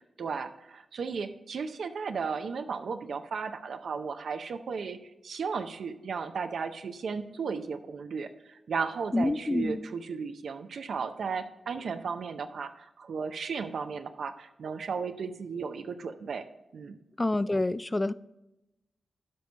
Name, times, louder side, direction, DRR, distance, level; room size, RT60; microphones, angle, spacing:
voice 1, 0.0-5.0 5.2-16.5 16.7-17.0, right 5 dB, 75° right, 0.6 m, -35 dB
voice 2, 9.1-9.8 17.2-18.1, left 2 dB, 25° left, 0.3 m, -27 dB
12.0 x 5.2 x 4.5 m
cardioid pair, 60°, 0 cm